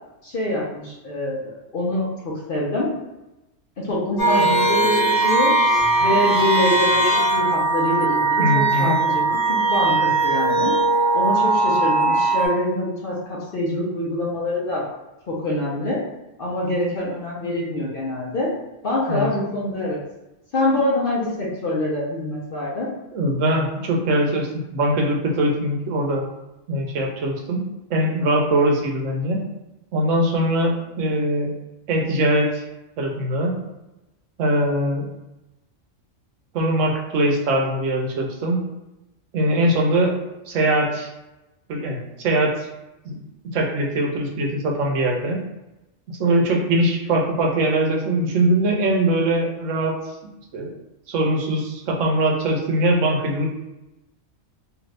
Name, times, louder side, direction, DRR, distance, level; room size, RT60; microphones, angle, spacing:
voice 1, 0.2-2.9 3.8-5.5 6.0-10.7 11.1-14.8 15.3-16.0 16.4-18.5 18.8-20.0 20.5-22.9, left 1 dB, 50° left, -5 dB, 0.8 m, -25 dB
sound 1, 4.2-12.5, right 2 dB, 30° left, 0.5 m, -19 dB
voice 2, 8.4-8.9 19.1-19.3 23.1-26.2 26.7-29.4 29.9-31.5 31.9-32.6 33.0-33.6 34.4-35.0 36.5-38.6 39.3-40.2 40.5-41.1 41.7-42.7 43.0-43.1 43.5-45.4 46.1-49.9 50.5-50.7 51.1-53.6, right 1 dB, 75° right, 0 dB, 0.9 m, -21 dB
2.7 x 2.5 x 3.2 m, 0.96 s
omnidirectional pair, 1.3 m